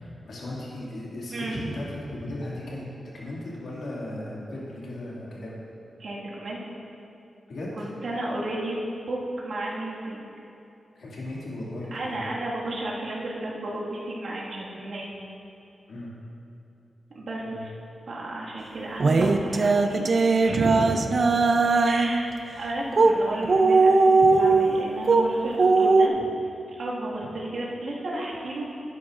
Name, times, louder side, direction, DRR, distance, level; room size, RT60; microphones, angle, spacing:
voice 1, 0.2-2.9 3.1-5.6 7.5-7.9 11.0-12.2 15.9-16.1 17.4-17.6 20.8-21.3, left 1 dB, 75° left, -5 dB, 2.2 m, -37 dB
voice 2, 6.0-6.6 7.8-8.8 9.1-10.2 11.9-15.1 17.1-17.7 18.1-20.0 20.4-20.9 21.8-22.3 22.6-26.2 26.8-28.6, right 1 dB, 75° right, -6 dB, 1.8 m, -32 dB
sound 1, 19.0-22.2 22.9-23.1 23.4-25.3 25.6-26.1, right 3 dB, 55° right, 0.4 m, -19 dB
11.5 x 9.6 x 2.5 m, 2.8 s
wide cardioid pair, 95°, 0 cm